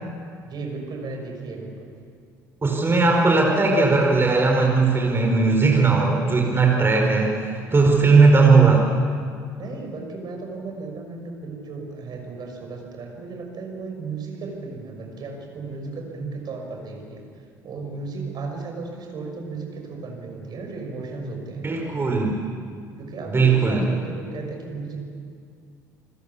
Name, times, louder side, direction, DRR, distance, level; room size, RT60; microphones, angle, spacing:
voice 1, 0.4-1.9 9.6-21.6 23.0-25.0, right 4 dB, 50° right, 2 dB, 6.1 m, -35 dB
voice 2, 2.6-7.3 7.7-8.9 21.6-22.4 23.3-23.8, right 4 dB, 25° right, 0 dB, 4.9 m, -18 dB
29.0 x 21.5 x 7.0 m, 2.2 s
hypercardioid pair, 60°, 9 cm